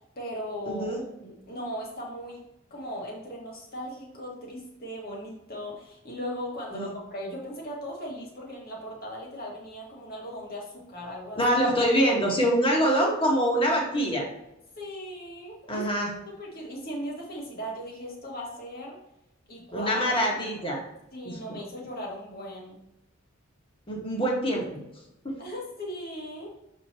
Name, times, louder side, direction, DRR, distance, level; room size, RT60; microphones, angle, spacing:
voice 1, 0.2-2.4 2.7-11.4 14.8-15.9 16.3-19.0 19.5-20.6 21.1-22.8 25.4-26.6, equal, 50° left, -2 dB, 2.0 m, -38 dB
voice 2, 0.7-1.0 6.7-6.9 11.3-14.3 15.7-16.1 19.7-20.8 21.2-21.6 23.9-24.8 25.2-25.3, equal, 25° left, -2 dB, 1.7 m, -25 dB
6.9 x 5.3 x 3.0 m, 0.88 s
head